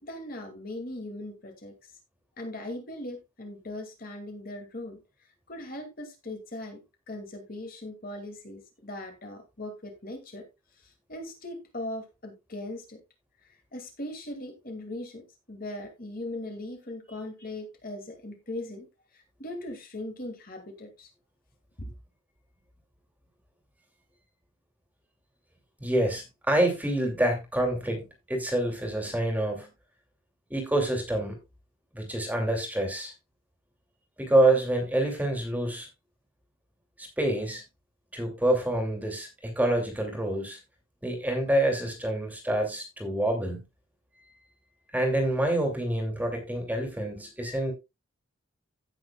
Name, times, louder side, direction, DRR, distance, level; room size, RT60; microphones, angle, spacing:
voice 1, 0.0-1.7 2.4-5.0 5.5-6.8 7.1-10.4 11.1-13.0 13.7-15.2 15.5-18.9 19.4-21.1 21.8-21.9, left 1 dB, 45° left, 2.2 m, -39 dB
voice 2, 25.8-29.7 30.5-31.4 31.9-33.1 34.2-35.9 37.0-37.6 38.1-40.6 41.0-43.6 44.9-47.7, right 1 dB, 10° right, 2.5 m, -27 dB
16.0 x 6.4 x 2.3 m
head